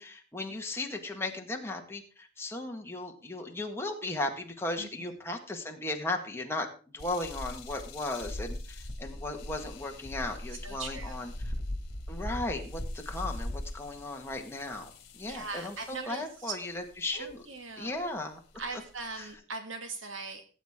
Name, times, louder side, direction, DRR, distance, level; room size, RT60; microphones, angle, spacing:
voice 1, 0.0-11.3 12.1-17.4 17.8-18.4 19.2-19.3, left 2 dB, 15° left, 2 dB, 1.7 m, -36 dB
voice 2, 4.8-5.1 10.6-11.2 15.3-16.6 17.1-18.0 18.6-20.5, right 4 dB, 80° right, 6 dB, 2.1 m, -40 dB
sound 1, 7.0-16.2 16.9-17.3 18.0-18.1 18.5-19.3, left 1 dB, 55° left, 2.3 m, -40 dB
17.5 x 8.3 x 3.7 m, 0.38 s
head